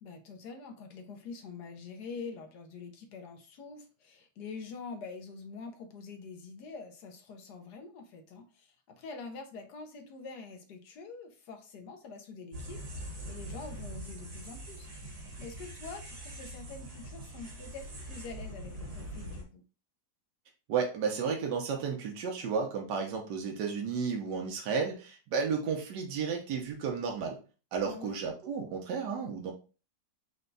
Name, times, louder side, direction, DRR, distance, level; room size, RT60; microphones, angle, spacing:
voice 1, 0.0-19.6 27.8-28.2, left 4 dB, 75° left, 5 dB, 1.3 m, -45 dB
sound 1, 12.5-19.4, right 1 dB, 65° right, 1.7 m, -43 dB
voice 2, 20.7-27.4 27.7-29.5, right 5 dB, 85° right, 2 dB, 1.4 m, -33 dB
4.4 x 2.2 x 3.8 m, 0.35 s
omnidirectional pair, 1.8 m